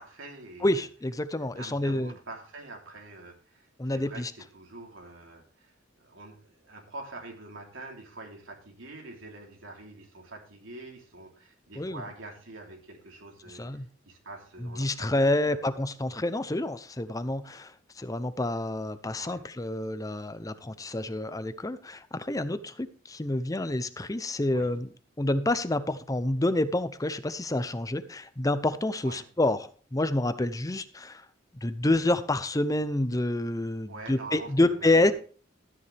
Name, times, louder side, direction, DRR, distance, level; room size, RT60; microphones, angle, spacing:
voice 1, 0.0-0.8 1.4-15.6 19.1-19.4 24.5-24.8 29.0-29.3 33.9-35.1, right 2 dB, 90° right, 0 dB, 3.4 m, -45 dB
voice 2, 0.6-2.1 3.8-4.3 11.8-12.0 13.5-13.8 14.6-24.9 25.2-31.2 31.6-35.1, left 1 dB, 20° left, 13 dB, 0.6 m, -28 dB
13.0 x 9.7 x 3.4 m, 0.40 s
head